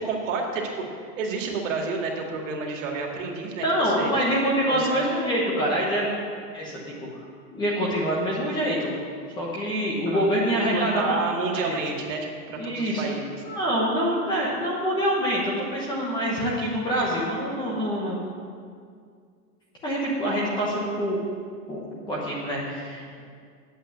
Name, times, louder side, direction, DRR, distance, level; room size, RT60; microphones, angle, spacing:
voice 1, 0.0-4.1 4.7-5.0 10.1-10.3 10.7-13.4, right 4 dB, 50° right, 1 dB, 2.2 m, -30 dB
voice 2, 3.6-6.2 6.5-6.8 7.5-8.9 9.4-11.2 11.7-11.8 12.6-13.1 13.4-18.2 19.8-21.2 21.7-23.2, equal, 10° left, -5 dB, 0.9 m, -25 dB
8.8 x 7.7 x 8.9 m, 2.1 s
supercardioid pair, 170°, 48 cm